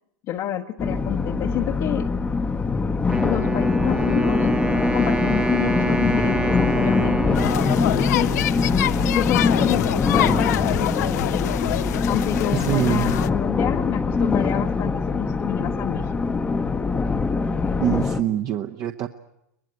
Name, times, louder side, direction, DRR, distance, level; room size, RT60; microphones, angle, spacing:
voice 1, 0.3-2.1 3.2-4.5 4.9-7.4 7.8-8.3 9.0-11.4 12.1-16.1, left 12 dB, 40° left, 2 dB, 1.1 m, -28 dB
sound 1, 0.8-18.2, left 4 dB, 15° left, 1.0 m, -23 dB
Wind instrument woodwind instrument, 3.1-9.0, right 3 dB, 10° right, 0.9 m, -27 dB
sound 2, 7.3-13.3, left 13 dB, 65° left, 0.8 m, -26 dB
voice 2, 12.5-13.1 17.7-19.1, right 11 dB, 35° right, 6 dB, 1.0 m, -24 dB
23.0 x 19.5 x 9.3 m, 0.84 s
hypercardioid pair, 115°, 10 cm